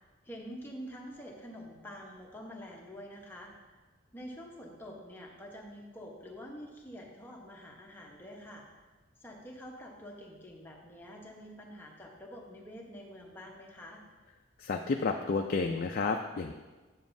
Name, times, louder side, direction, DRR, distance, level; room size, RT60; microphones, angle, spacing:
voice 1, 0.2-3.5 4.1-8.7 9.2-14.0, equal, 10° left, -1 dB, 0.9 m, -47 dB
voice 2, 14.6-16.5, left 4 dB, 45° left, 3 dB, 0.3 m, -31 dB
8.0 x 7.3 x 2.6 m, 1.3 s
head